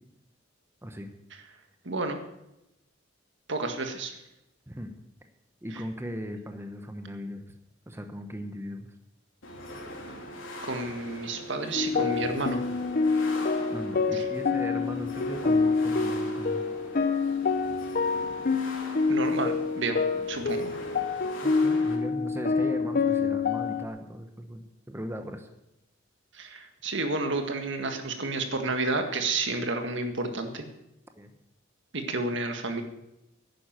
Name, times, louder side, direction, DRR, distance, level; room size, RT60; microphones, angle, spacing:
voice 1, 1.9-2.2 3.5-4.2 10.6-12.6 14.1-14.2 19.1-20.0 20.3-20.7 26.3-30.6 31.9-32.8, right 3 dB, 65° right, 5 dB, 1.8 m, -30 dB
voice 2, 5.6-7.4 7.9-8.9 13.7-16.6 21.4-25.5 31.2-31.4, equal, 15° right, 6 dB, 1.0 m, -38 dB
sound 1, 9.4-22.0, left 1 dB, 90° left, 3.0 m, -42 dB
sound 2, 11.7-23.9, left 4 dB, 50° left, 0.8 m, -27 dB
11.0 x 9.9 x 7.5 m, 0.88 s
head